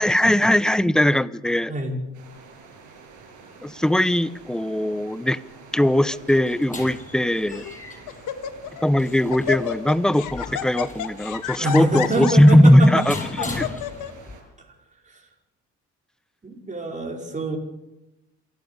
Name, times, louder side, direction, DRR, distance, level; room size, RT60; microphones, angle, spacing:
voice 1, 0.0-1.7 3.6-5.4 5.7-7.6 8.8-13.7, equal, ahead, 15 dB, 0.9 m, -19 dB
voice 2, 1.7-2.0 11.6-13.0 13.4-13.6 15.1-15.2 16.4-17.6, right 1 dB, 25° right, 0 dB, 4.9 m, -26 dB
sound 1, 2.1-14.4, right 4 dB, 85° right, 6.6 m, -47 dB
Laughter, 5.8-6.2 6.9-7.0 7.5-7.8 8.1-8.8 9.1-14.1, left 11 dB, 85° left, 1.7 m, -31 dB
sound 2, 5.9-14.3, left 3 dB, 25° left, 7.2 m, -39 dB
27.5 x 12.0 x 8.2 m, 0.96 s
cardioid pair, 90°, 30 cm